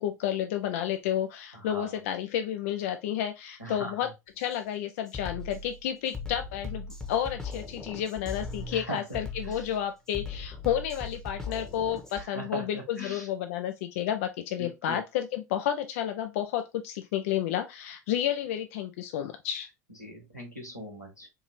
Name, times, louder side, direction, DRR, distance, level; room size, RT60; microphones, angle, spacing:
voice 1, 0.0-4.1 4.4-19.7, left 10 dB, 55° left, 0.4 m, -31 dB
voice 2, 1.5-2.0 3.6-4.1 8.7-9.0 9.4-9.7 12.1-13.3 14.6-15.0 20.0-21.3, equal, 90° left, 1.3 m, -40 dB
Drum kit, 4.4-4.6 5.1-12.3, left 4 dB, 5° left, 0.9 m, -39 dB
4.5 x 2.7 x 3.1 m
figure-of-eight pair, 70°, 9 cm